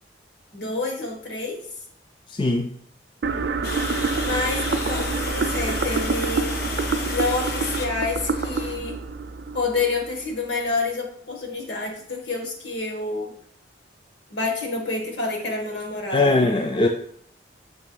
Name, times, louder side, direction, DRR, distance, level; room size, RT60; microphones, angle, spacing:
voice 1, 0.5-1.6 4.2-6.5 7.1-9.0 9.5-13.3 14.3-16.3, left 3 dB, 75° left, 2 dB, 1.4 m, -28 dB
voice 2, 2.3-2.7 16.1-16.9, left 2 dB, 25° left, 5 dB, 0.3 m, -20 dB
sound 1, 3.2-10.3, right 4 dB, 65° right, 0.5 m, -27 dB
Water, 3.6-8.8, left 3 dB, 55° left, 0.8 m, -32 dB
6.3 x 3.0 x 5.4 m, 0.65 s
head